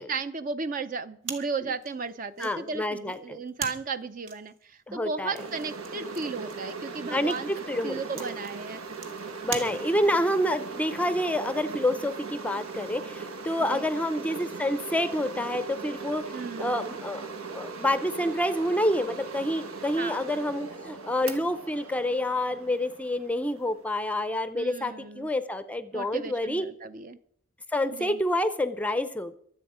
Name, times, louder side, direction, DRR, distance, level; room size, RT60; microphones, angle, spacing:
voice 1, 0.0-7.5 7.8-8.8 13.7-13.8 16.3-16.9 20.0-20.2 24.5-25.3 25.9-27.2 27.9-28.2, right 4 dB, 40° right, 12 dB, 0.6 m, -35 dB
sound 1, 1.2-10.3, right 6 dB, 60° right, 1.9 m, -42 dB
voice 2, 2.4-3.4 4.9-5.4 7.1-8.2 9.4-26.6 27.7-29.3, left 1 dB, 5° left, 12 dB, 0.5 m, -28 dB
sound 2, 5.4-23.8, right 4 dB, 85° right, 1.6 m, -39 dB
24.0 x 8.0 x 5.0 m, 0.64 s
head